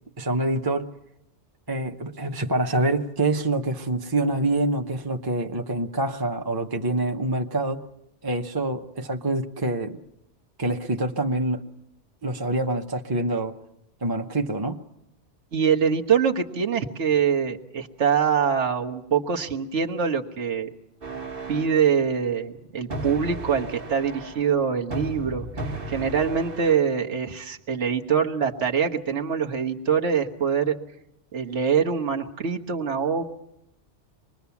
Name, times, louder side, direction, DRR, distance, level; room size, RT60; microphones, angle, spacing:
voice 1, 0.2-0.9 1.7-7.8 8.2-10.0 10.6-11.6 12.2-13.5 14.0-14.8, right 2 dB, 20° right, 4 dB, 0.9 m, -26 dB
voice 2, 15.5-20.7 21.5-25.4 25.9-30.8 31.3-33.2, right 7 dB, 75° right, 3 dB, 1.7 m, -24 dB
sound 1, 21.0-21.9 22.9-24.5 24.9-26.8, right 2 dB, 50° right, 1.7 m, -35 dB
25.5 x 21.5 x 7.1 m, 0.79 s
omnidirectional pair, 1.2 m